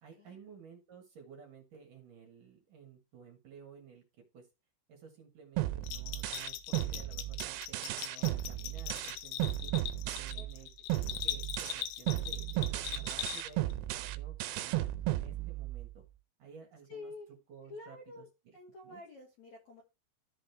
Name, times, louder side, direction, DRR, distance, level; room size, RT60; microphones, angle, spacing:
voice 1, 0.0-4.0 4.3-4.5 4.9-16.0 16.4-17.1 17.5-18.6 18.8-19.0, right 6 dB, 60° right, 2 dB, 2.6 m, -54 dB
sound 1, 5.6-10.6 10.9-15.9, right 16 dB, 80° right, 2.7 m, -35 dB
Bell, 5.8-13.7, left 12 dB, 85° left, 3.3 m, -41 dB
voice 2, 10.1-10.5 16.9-17.3 17.6-18.3 18.5-19.8, left 2 dB, 65° left, 0 dB, 1.9 m, -49 dB
13.5 x 5.0 x 3.5 m, 0.28 s
omnidirectional pair, 5.4 m